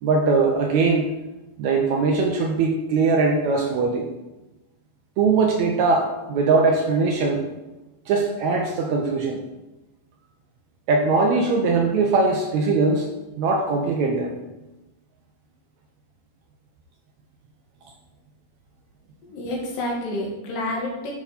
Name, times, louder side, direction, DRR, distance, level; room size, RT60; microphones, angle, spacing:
voice 1, 0.0-1.1 1.6-4.1 5.2-7.4 8.1-9.4 10.9-13.1 13.4-14.3, right 4 dB, 80° right, 2 dB, 1.7 m, -21 dB
voice 2, 19.2-21.1, left 1 dB, 85° left, -2 dB, 3.1 m, -29 dB
10.0 x 3.6 x 4.0 m, 1.0 s
omnidirectional pair, 3.7 m